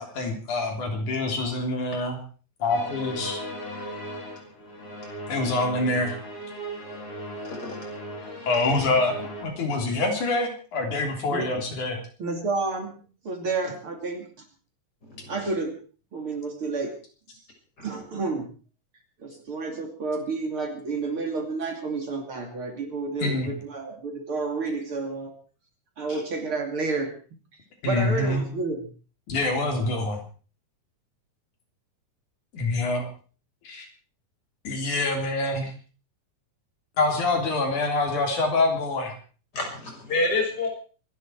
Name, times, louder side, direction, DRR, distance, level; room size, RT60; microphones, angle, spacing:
voice 1, 0.2-2.2 2.6-3.4 5.3-6.2 8.5-12.0 23.2-23.5 27.8-28.5 29.3-30.2 32.5-33.0 33.6-33.9 34.6-35.7 37.0-39.1, left 2 dB, 90° left, 3 dB, 4.9 m, -25 dB
sound 1, 2.7-9.4, equal, 55° left, 8.2 m, -37 dB
voice 2, 11.3-11.6 12.2-14.3 15.3-15.8 16.1-17.0 17.8-18.5 19.2-25.3 26.0-27.1 27.8-28.8, right 3 dB, 45° right, 4 dB, 3.4 m, -30 dB
voice 3, 39.5-40.7, left 2 dB, 30° left, 1 dB, 6.8 m, -28 dB
25.5 x 11.5 x 4.7 m, 0.39 s
omnidirectional pair, 3.4 m